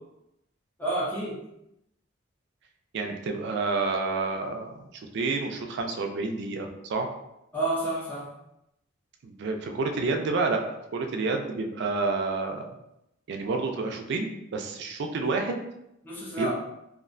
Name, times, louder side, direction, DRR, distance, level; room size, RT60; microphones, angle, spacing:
voice 1, 0.8-1.4 7.5-8.3 16.0-16.5, right 2 dB, 10° left, -7 dB, 0.5 m, -29 dB
voice 2, 2.9-4.9 5.1-7.1 9.2-10.6 10.9-12.6 13.3-15.6 16.4-16.5, right 3 dB, 60° right, 4 dB, 0.3 m, -29 dB
2.5 x 2.1 x 2.5 m, 0.84 s
head